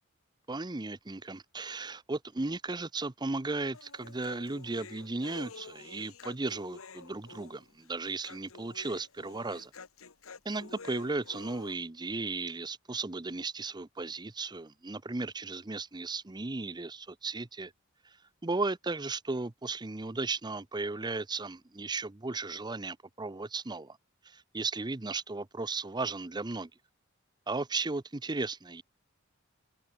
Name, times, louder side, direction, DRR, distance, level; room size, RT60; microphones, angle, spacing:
voice 1, 0.5-9.7 10.4-17.7 18.0-18.2 18.4-24.0 24.2-26.7 27.5-28.8, right 3 dB, 20° right, 0.7 m, -35 dB
Human voice, 3.7-11.7, left 4 dB, 90° left, 1.3 m, -49 dB
head